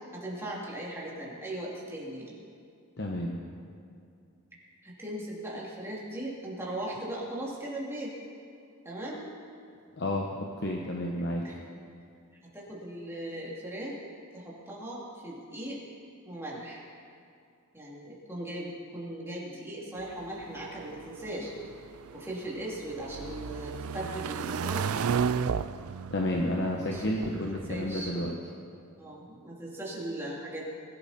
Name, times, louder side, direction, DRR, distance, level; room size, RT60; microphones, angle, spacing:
voice 1, 0.0-2.4 4.8-8.1 8.8-9.3 11.4-11.6 12.5-14.0 14.3-15.8 16.2-16.8 17.7-21.5 22.1-25.1 26.8-28.1 29.0-30.6, right 1 dB, 10° right, -5 dB, 2.8 m, -38 dB
voice 2, 3.0-3.3 10.0-11.4 26.1-28.3, left 1 dB, 50° left, 0 dB, 1.1 m, -31 dB
sound 1, 20.0-28.4, right 6 dB, 80° right, 0.4 m, -34 dB
21.0 x 11.0 x 4.3 m, 2.5 s
head